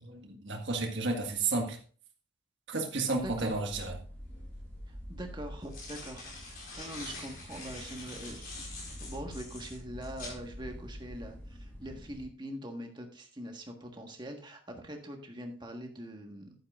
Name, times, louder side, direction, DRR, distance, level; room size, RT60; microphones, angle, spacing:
voice 1, 0.0-1.8 2.7-4.0, right 3 dB, 60° right, 3 dB, 1.7 m, -32 dB
voice 2, 3.1-3.5 4.9-16.5, right 1 dB, 20° right, 3 dB, 1.5 m, -43 dB
sound 1, 3.2-12.3, equal, 10° left, 3.2 m, -47 dB
sound 2, 4.3-4.4 5.4-10.4, left 2 dB, 45° left, 4.2 m, -45 dB
11.0 x 9.4 x 2.5 m, 0.42 s
head